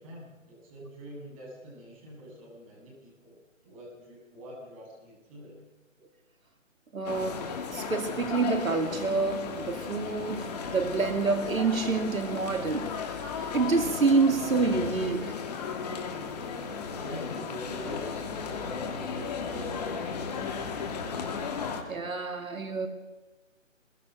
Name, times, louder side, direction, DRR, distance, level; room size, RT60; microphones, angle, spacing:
voice 1, 0.0-3.4 3.6-5.6 16.8-21.3, equal, 25° right, -1 dB, 7.5 m, -45 dB
voice 2, 6.9-7.5 7.7-12.9 13.3-15.3 21.9-22.9, right 4 dB, 85° right, 6 dB, 2.5 m, -27 dB
sound 1, 7.0-21.8, left 5 dB, 30° left, 2.7 m, -35 dB
23.5 x 22.0 x 6.4 m, 1.2 s
hypercardioid pair, 160°, 40 cm